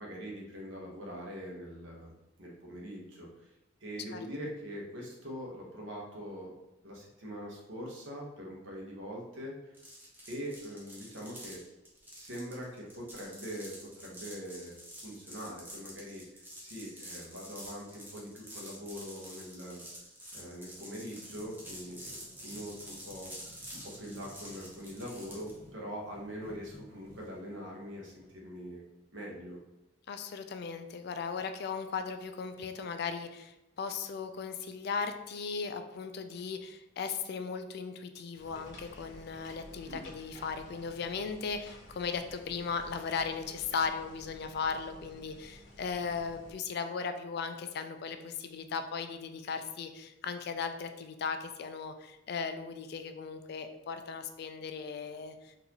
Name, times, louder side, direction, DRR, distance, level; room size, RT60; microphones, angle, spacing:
voice 1, 0.0-2.1 2.4-3.5 3.8-6.5 6.8-9.7 10.3-11.6 12.1-14.8 15.0-19.8 20.3-28.8 29.1-29.6 39.8-40.1, equal, 85° right, -2 dB, 1.0 m, -43 dB
sound 1, 9.7-25.6, equal, 10° right, 0.7 m, -48 dB
sound 2, 20.6-28.8, equal, 55° right, 0.9 m, -57 dB
voice 2, 30.1-55.6, left 5 dB, 55° left, 8 dB, 0.3 m, -37 dB
sound 3, 38.4-46.5, equal, 75° left, 1.0 m, -53 dB
3.9 x 2.6 x 2.9 m, 0.96 s
head